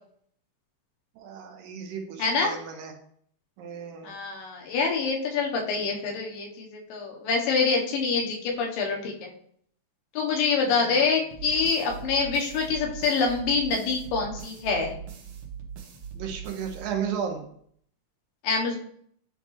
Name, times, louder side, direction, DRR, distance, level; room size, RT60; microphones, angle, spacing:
voice 1, 1.2-2.9 3.6-4.1 10.6-11.2 16.1-17.4, right 7 dB, 85° right, 3 dB, 2.6 m, -34 dB
voice 2, 2.2-2.5 4.0-9.3 10.2-14.9 18.4-18.8, left 4 dB, 85° left, 0 dB, 2.8 m, -26 dB
sound 1, 11.3-17.4, right 7 dB, 65° right, 1.6 m, -41 dB
9.7 x 3.5 x 3.1 m, 0.64 s
omnidirectional pair, 3.9 m